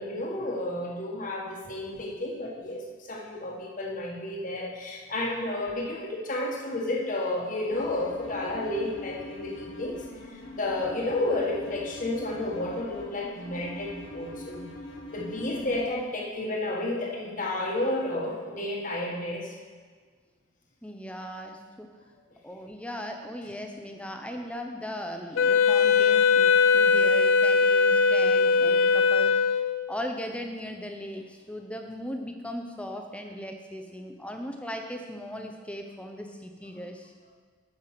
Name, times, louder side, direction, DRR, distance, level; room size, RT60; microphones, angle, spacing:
voice 1, 0.0-10.0 10.5-14.6 15.1-19.6, left 1 dB, 40° left, -1 dB, 1.6 m, -31 dB
sound 1, 7.7-15.9, left 1 dB, 65° left, 1.2 m, -43 dB
voice 2, 20.8-21.9 22.4-29.4 29.9-37.1, equal, 5° left, 3 dB, 0.8 m, -38 dB
Wind instrument woodwind instrument, 25.4-29.9, left 5 dB, 85° left, 0.5 m, -20 dB
9.0 x 7.2 x 5.9 m, 1.5 s
head